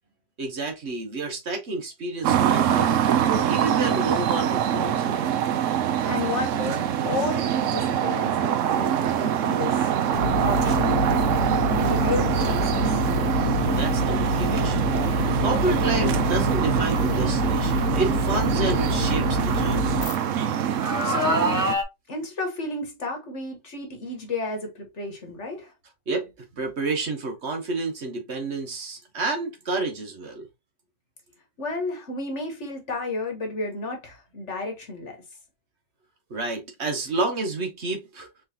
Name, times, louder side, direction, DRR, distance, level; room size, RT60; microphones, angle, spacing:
voice 1, 0.4-3.0 3.5-5.2 13.6-20.0 26.1-30.5 36.3-38.3, right 3 dB, 55° right, 1.2 m, -30 dB
sound 1, 2.2-21.8, right 9 dB, 70° right, 0.9 m, -24 dB
voice 2, 6.1-11.0 11.7-13.0 21.0-21.7 22.1-25.7 31.6-35.2, left 3 dB, 55° left, 1.5 m, -32 dB
sound 2, 9.0-9.2 10.6-10.7 13.7-13.9 14.8-14.9 15.9-16.0 16.7-16.8 18.1-19.9 20.8-21.8, right 1 dB, 30° right, 0.3 m, -28 dB
sound 3, 10.1-20.2, left 1 dB, 80° left, 1.2 m, -26 dB
4.5 x 3.2 x 2.8 m
omnidirectional pair, 1.5 m